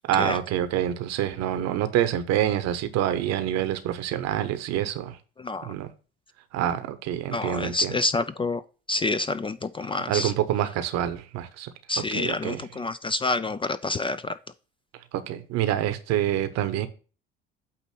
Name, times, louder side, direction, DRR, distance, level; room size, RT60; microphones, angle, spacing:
voice 1, 0.1-5.2 5.6-5.9 6.5-8.0 10.1-11.7 12.1-12.7 14.9-16.9, right 11 dB, 60° right, 1.0 m, -27 dB
voice 2, 5.4-5.7 7.3-8.6 8.9-10.3 11.9-14.3, left 3 dB, 20° left, 0.4 m, -28 dB
8.6 x 2.9 x 6.1 m
hypercardioid pair, 60°, 30 cm